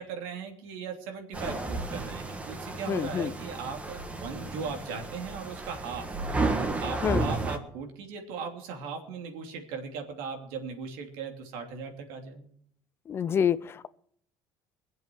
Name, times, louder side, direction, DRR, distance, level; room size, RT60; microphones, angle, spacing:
voice 1, 0.0-6.1 6.8-12.5, right 5 dB, 85° right, 2.8 m, -38 dB
sound 1, 1.3-7.6, right 3 dB, 20° right, 1.7 m, -33 dB
voice 2, 2.9-3.3 7.0-7.3 13.1-13.9, left 8 dB, 35° left, 0.5 m, -27 dB
21.5 x 7.9 x 6.1 m
cardioid pair, 125°, 7 cm